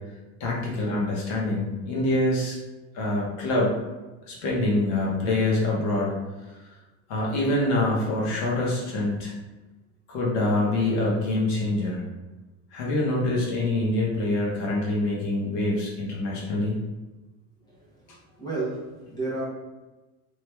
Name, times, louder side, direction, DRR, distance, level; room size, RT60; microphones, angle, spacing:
voice 1, 0.4-2.6 2.9-3.8 4.3-6.1 7.1-9.3 10.1-12.0 12.7-16.8, left 2 dB, 65° left, -4 dB, 1.1 m, -25 dB
voice 2, 17.7-19.5, right 2 dB, 10° left, -7 dB, 0.5 m, -33 dB
3.2 x 2.9 x 2.2 m, 1.1 s
supercardioid pair, 165°, 40 cm